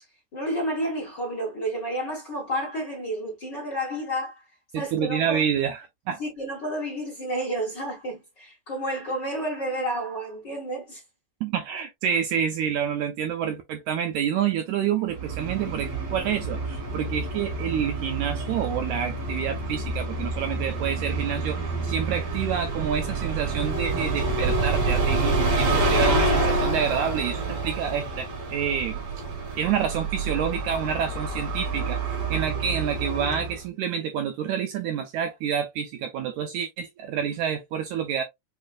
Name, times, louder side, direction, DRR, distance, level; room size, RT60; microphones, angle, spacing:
voice 1, 0.3-4.4 4.7-5.4 6.2-11.0, right 1 dB, 45° left, 1.4 m, -30 dB
voice 2, 4.7-5.8 6.1-6.2 11.4-29.0 29.5-38.2, right 8 dB, 85° right, 1.7 m, -28 dB
Bus, 15.1-33.6, right 3 dB, 55° right, 2.8 m, -28 dB
6.4 x 2.5 x 2.3 m
omnidirectional pair, 3.8 m